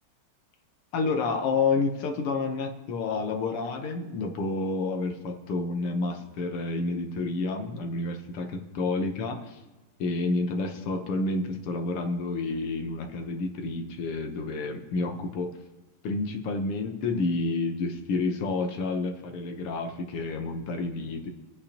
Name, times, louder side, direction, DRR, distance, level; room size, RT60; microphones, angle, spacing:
voice 1, 0.9-9.6 10.0-15.5 16.0-21.3, left 3 dB, 85° left, 4 dB, 2.0 m, -29 dB
22.0 x 8.5 x 2.9 m, 1.2 s
omnidirectional pair, 2.4 m